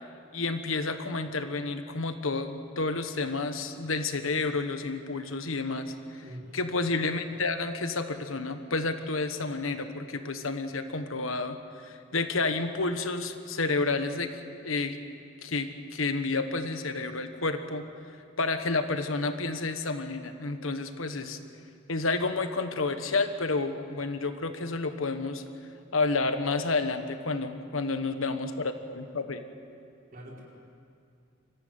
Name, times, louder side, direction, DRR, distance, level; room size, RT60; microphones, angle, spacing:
voice 1, 0.3-6.2 6.5-11.6 11.8-14.3 14.6-15.0 15.4-17.8 18.4-21.4 21.9-25.4 25.9-29.4, left 3 dB, 80° left, 8 dB, 1.4 m, -30 dB
voice 2, 6.2-6.6 30.1-30.4, equal, 45° right, -3 dB, 4.8 m, -44 dB
25.0 x 15.0 x 9.3 m, 2.4 s
head